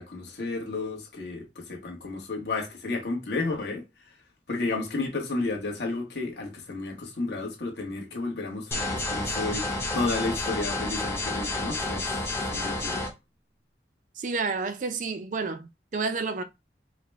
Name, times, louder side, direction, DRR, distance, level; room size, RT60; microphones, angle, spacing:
voice 1, 0.0-3.8 4.5-12.1 12.5-13.0, left 3 dB, 70° left, 1.2 m, -32 dB
sound 1, 8.7-13.1, left 2 dB, 15° left, 0.6 m, -30 dB
voice 2, 14.2-16.4, right 4 dB, 45° right, 0.4 m, -30 dB
4.7 x 2.1 x 3.4 m
head